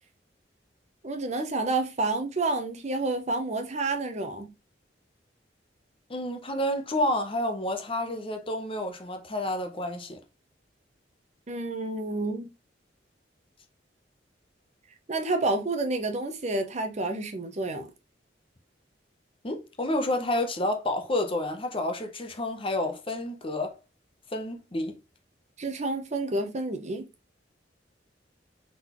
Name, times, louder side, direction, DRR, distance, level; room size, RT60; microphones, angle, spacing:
voice 1, 1.0-4.5 11.5-12.5 15.1-17.9 25.6-27.1, right 2 dB, 40° right, 0.7 m, -29 dB
voice 2, 6.1-10.2 19.4-23.8 24.3-24.9, left 1 dB, 30° left, 0.7 m, -29 dB
4.0 x 3.7 x 3.0 m
head